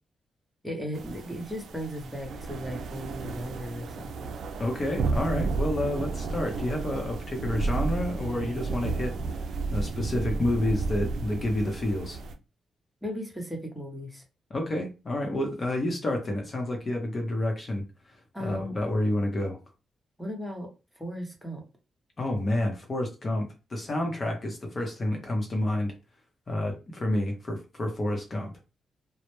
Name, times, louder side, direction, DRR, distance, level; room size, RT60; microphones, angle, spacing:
voice 1, 0.6-4.4 13.0-14.2 18.3-18.8 20.2-20.7 21.0-21.6, equal, 5° right, 0.8 m, -36 dB
sound 1, 0.9-12.3, right 4 dB, 80° right, 0.3 m, -32 dB
voice 2, 4.6-9.4 9.7-12.2 14.5-17.8 18.4-19.6 22.2-25.9 26.5-28.5, left 1 dB, 45° left, 0.7 m, -29 dB
2.0 x 2.0 x 3.0 m
cardioid pair, 75°, 0 cm